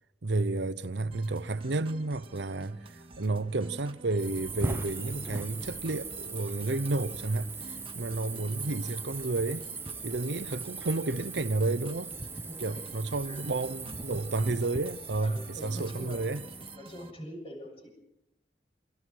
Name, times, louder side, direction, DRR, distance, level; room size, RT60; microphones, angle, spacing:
voice 1, 0.2-7.5 7.9-9.7 10.0-12.1 12.6-16.4, right 2 dB, 80° right, 0.8 m, -31 dB
sound 1, 1.1-17.1, right 2 dB, 30° right, 1.8 m, -50 dB
sound 2, 4.2-16.8, right 3 dB, 15° right, 0.9 m, -40 dB
voice 2, 12.5-12.8 13.2-13.6 15.2-16.2 16.7-17.9, equal, 35° left, 7.2 m, -44 dB
28.5 x 24.0 x 4.7 m
head